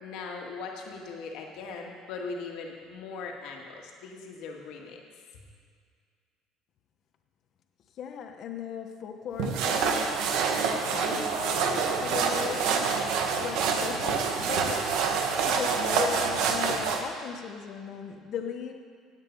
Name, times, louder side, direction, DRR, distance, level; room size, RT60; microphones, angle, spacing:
voice 1, 0.0-5.0, left 4 dB, 70° left, 1 dB, 2.0 m, -39 dB
voice 2, 8.0-10.1 10.7-13.0 13.4-14.8 15.4-18.7, left 7 dB, 50° left, 5 dB, 1.0 m, -37 dB
sound 1, 9.4-17.0, right 5 dB, 70° right, 1.4 m, -27 dB
16.5 x 8.8 x 5.4 m, 2.1 s
cardioid pair, 135°, 0 cm